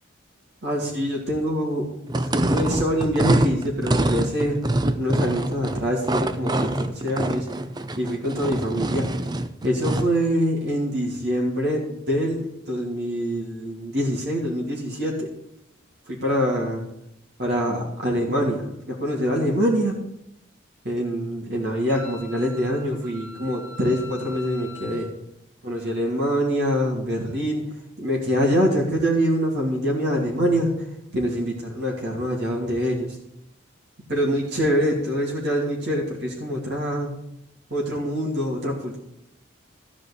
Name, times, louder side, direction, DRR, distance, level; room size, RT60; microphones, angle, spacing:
voice 1, 0.6-1.9 2.2-4.6 4.9-7.5 8.0-9.1 9.6-15.3 16.1-16.8 17.4-19.9 20.8-25.1 25.6-27.6 28.0-33.2 34.1-37.1 37.7-39.1, equal, 55° right, -3 dB, 2.6 m, -25 dB
sound 1, 2.1-10.2, right 1 dB, 20° right, 0.5 m, -25 dB
Wind instrument woodwind instrument, 21.9-25.1, left 1 dB, 10° left, 2.0 m, -42 dB
14.0 x 5.0 x 8.2 m, 0.80 s
head